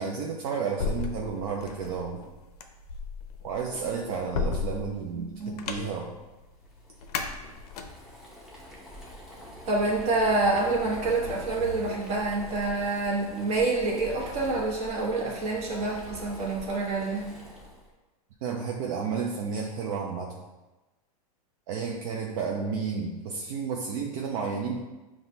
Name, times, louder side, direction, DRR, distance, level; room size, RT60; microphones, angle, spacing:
voice 1, 0.0-2.2 3.4-6.1 18.4-20.3 21.7-24.8, right 5 dB, 60° right, -1 dB, 0.5 m, -32 dB
sound 1, 0.8-8.2, left 5 dB, 80° left, 0.5 m, -35 dB
voice 2, 5.1-5.6 9.7-17.3, right 3 dB, 35° right, -4 dB, 1.2 m, -27 dB
Boiling, 6.6-17.9, left 1 dB, ahead, 0.7 m, -44 dB
5.6 x 2.3 x 2.7 m, 1.1 s
supercardioid pair, 135°, 19 cm